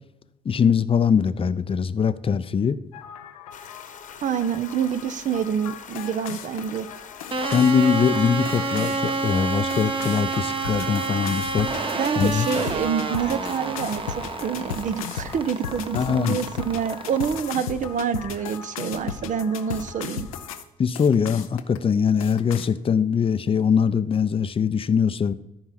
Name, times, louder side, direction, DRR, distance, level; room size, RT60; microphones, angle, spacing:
voice 1, 0.5-2.8 7.5-11.7 12.2-12.5 15.9-16.4 20.8-25.3, left 6 dB, 30° left, 0.6 m, -22 dB
sound 1, 2.9-20.6 21.0-21.8 22.2-22.7, left 8 dB, 85° left, 0.6 m, -37 dB
sound 2, 3.5-12.9, left 7 dB, 50° left, 1.2 m, -44 dB
voice 2, 4.2-6.9 11.9-20.3, right 7 dB, 45° right, 0.8 m, -27 dB
sound 3, 7.3-17.4, right 3 dB, 30° right, 1.1 m, -29 dB
13.0 x 4.7 x 5.8 m
hypercardioid pair, 50°, 18 cm